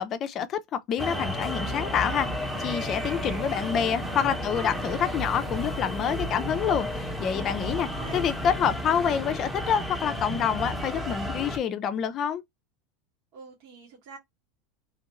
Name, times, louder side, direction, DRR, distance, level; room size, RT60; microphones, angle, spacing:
voice 1, 0.0-12.4, left 8 dB, 40° left, 0.5 m, -27 dB
sound 1, 1.0-11.6, equal, 5° right, 0.9 m, -32 dB
voice 2, 3.0-4.2 7.8-8.2 13.3-14.2, right 6 dB, 65° right, 1.4 m, -46 dB
3.1 x 2.5 x 2.9 m
supercardioid pair, 120°, 0 cm